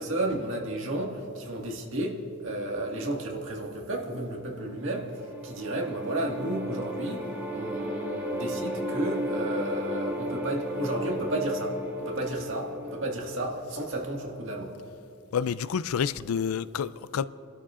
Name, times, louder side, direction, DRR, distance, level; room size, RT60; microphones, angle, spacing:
voice 1, 0.0-2.2 2.4-5.1 5.4-14.7, right 1 dB, 60° right, 0 dB, 1.8 m, -32 dB
sound 1, 4.8-13.9, equal, 10° right, 1.8 m, -34 dB
voice 2, 15.3-17.3, left 7 dB, 85° left, 16 dB, 0.4 m, -29 dB
30.0 x 12.5 x 2.5 m, 2.8 s
head